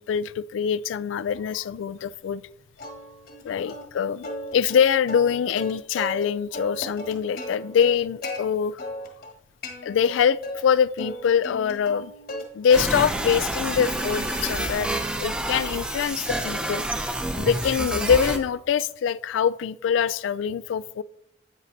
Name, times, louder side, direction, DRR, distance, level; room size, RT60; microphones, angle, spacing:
voice 1, 0.0-2.4 3.4-8.8 9.8-12.1 12.5-14.9 15.2-16.8 17.4-21.0, left 7 dB, 90° left, 0.3 m, -24 dB
Plucked string instrument, 2.8-3.4 3.7-3.8 4.2-6.3 6.5-8.4 8.8-9.3 9.6-10.6 11.0-12.4 12.7-13.2 13.6-17.8, left 1 dB, 55° left, 1.5 m, -37 dB
sound 1, 12.7-18.4, right 1 dB, 5° right, 0.6 m, -28 dB
9.5 x 8.1 x 2.7 m
head